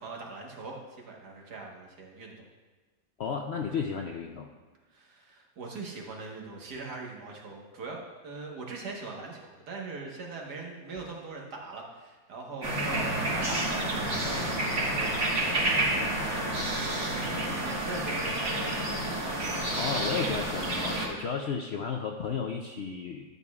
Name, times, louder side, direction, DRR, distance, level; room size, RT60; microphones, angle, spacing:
voice 1, 0.0-2.5 4.9-16.7 17.0-18.7, right 3 dB, 80° right, -1 dB, 1.9 m, -41 dB
voice 2, 3.2-4.5 19.7-23.2, left 6 dB, 70° left, 2 dB, 0.6 m, -33 dB
sound 1, 12.6-21.1, right 1 dB, 50° right, 1.9 m, -29 dB
12.5 x 8.4 x 2.4 m, 1.3 s
omnidirectional pair, 1.7 m